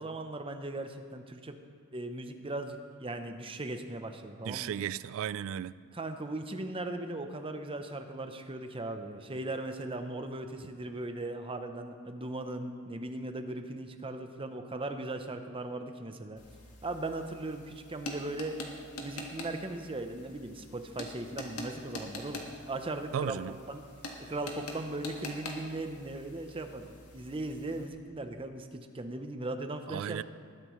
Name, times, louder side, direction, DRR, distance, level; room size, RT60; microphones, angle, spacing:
voice 1, 0.0-1.6 1.9-4.7 5.9-16.4 16.8-18.6 19.0-23.4 23.7-23.9 24.2-26.9 27.1-30.2, right 2 dB, 25° right, 7 dB, 0.7 m, -38 dB
voice 2, 4.5-5.7 23.1-23.5 29.9-30.2, right 9 dB, 65° right, 19 dB, 0.3 m, -35 dB
sound 1, 16.4-27.9, left 2 dB, 85° left, 1.6 m, -45 dB
20.0 x 10.0 x 3.1 m, 2.3 s
head